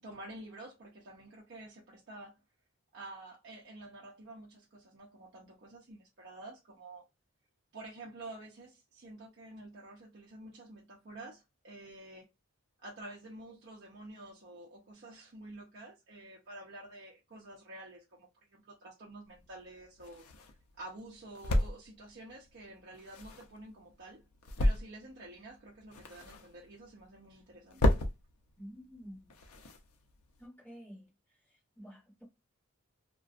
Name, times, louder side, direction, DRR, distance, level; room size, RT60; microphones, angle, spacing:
voice 1, 0.0-2.4 2.9-7.0 7.7-12.3 12.8-20.2 20.8-24.2 24.6-27.9, right 2 dB, 50° right, 0.6 m, -49 dB
sound 1, 19.3-30.5, left 1 dB, 80° left, 0.5 m, -35 dB
voice 2, 28.6-29.5 30.4-31.1 31.8-32.2, equal, 10° left, 1.2 m, -50 dB
2.4 x 2.1 x 2.4 m
head